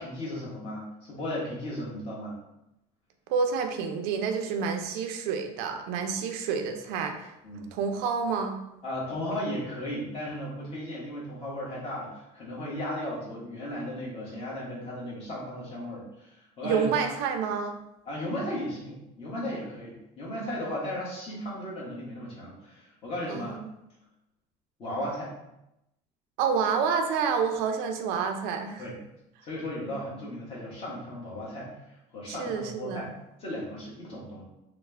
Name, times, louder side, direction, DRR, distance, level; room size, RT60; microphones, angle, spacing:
voice 1, 0.0-2.4 7.4-7.7 8.8-16.9 18.1-23.6 24.8-25.3 28.8-28.9 29.4-31.7 32.1-33.1 33.4-34.4, left 1 dB, 35° left, -5 dB, 1.2 m, -35 dB
voice 2, 3.3-7.3 7.7-8.6 16.6-17.8 23.3-23.7 26.4-28.8 32.3-33.1, right 6 dB, 80° right, 5 dB, 0.5 m, -28 dB
3.2 x 2.1 x 3.3 m, 0.87 s
cardioid pair, 140°, 16 cm